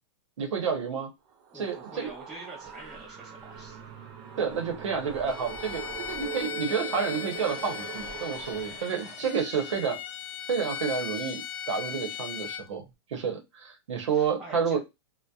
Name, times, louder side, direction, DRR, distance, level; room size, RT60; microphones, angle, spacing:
voice 1, 0.4-1.1 1.5-2.1 4.4-10.0 10.5-11.4 11.7-12.8 13.1-14.8, right 6 dB, 85° right, 4 dB, 0.7 m, -30 dB
sound 1, 1.3-9.6, right 7 dB, 25° right, 0.4 m, -42 dB
voice 2, 1.5-3.8 9.0-9.6 14.1-14.8, right 2 dB, ahead, -10 dB, 0.9 m, -47 dB
Bowed string instrument, 5.3-12.7, left 9 dB, 50° left, 0.4 m, -38 dB
2.7 x 2.1 x 2.2 m, 0.23 s
hypercardioid pair, 155°, 15 cm